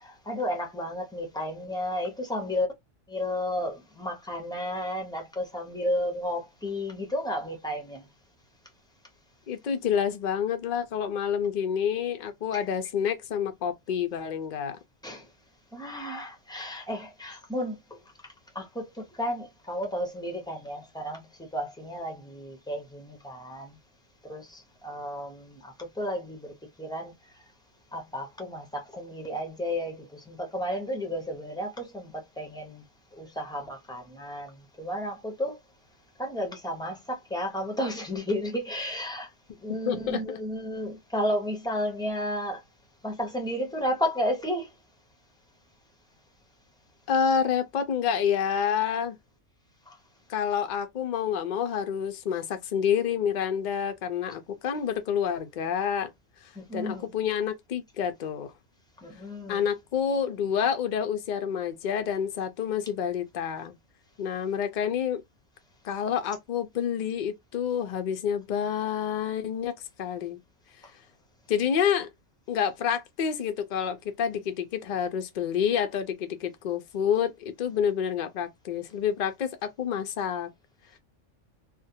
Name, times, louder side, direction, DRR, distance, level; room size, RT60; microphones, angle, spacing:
voice 1, 0.0-2.7 3.1-8.0 12.5-12.6 15.0-15.2 15.7-18.0 18.5-23.8 24.3-27.1 27.9-32.8 33.1-35.6 36.2-39.3 39.6-42.6 43.0-44.7 49.9-50.0 56.6-57.1 59.0-59.6, equal, 5° left, 0.3 m, -33 dB
voice 2, 9.5-14.8 39.7-40.4 47.1-49.2 50.3-56.1 56.7-58.5 59.5-63.7 64.2-65.2 65.8-69.7 70.0-70.4 71.5-72.1 72.5-80.5, left 8 dB, 70° left, 0.4 m, -28 dB
2.4 x 2.2 x 2.7 m
omnidirectional pair, 1.4 m